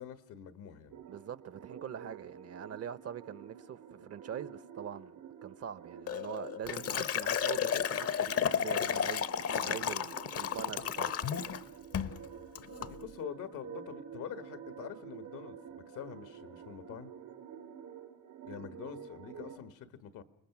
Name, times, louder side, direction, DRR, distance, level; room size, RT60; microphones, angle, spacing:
voice 1, 0.0-1.0 12.6-17.1 18.4-20.2, left 9 dB, 90° left, 1.7 m, -45 dB
sound 1, 0.9-19.6, right 8 dB, 80° right, 4.1 m, -49 dB
voice 2, 1.1-11.3 18.6-18.8, right 8 dB, 55° right, 0.9 m, -43 dB
Liquid, 6.1-11.6 11.9-12.2 12.6-12.9, left 8 dB, 50° left, 0.8 m, -33 dB
29.5 x 20.0 x 6.0 m
cardioid pair, 90°, 30 cm